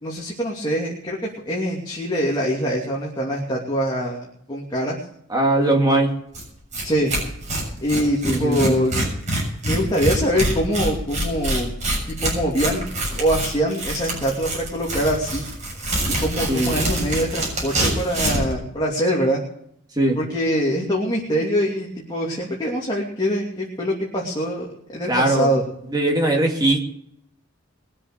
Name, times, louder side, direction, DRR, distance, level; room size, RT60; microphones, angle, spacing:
voice 1, 0.0-1.2 1.5-5.0 6.8-7.1 7.8-8.9 9.6-11.7 12.1-12.9 13.2-15.4 16.1-19.4 20.2-25.6, equal, 25° left, -3 dB, 2.8 m, -24 dB
voice 2, 5.3-6.1 8.2-8.9 16.5-16.7 19.9-20.2 25.1-25.5 25.9-26.8, right 1 dB, 20° right, 1 dB, 2.7 m, -20 dB
Tearing, 6.3-6.4 6.7-6.8 7.1-18.5, right 1 dB, 35° right, 7.0 m, -25 dB
22.0 x 7.6 x 6.8 m, 0.72 s
head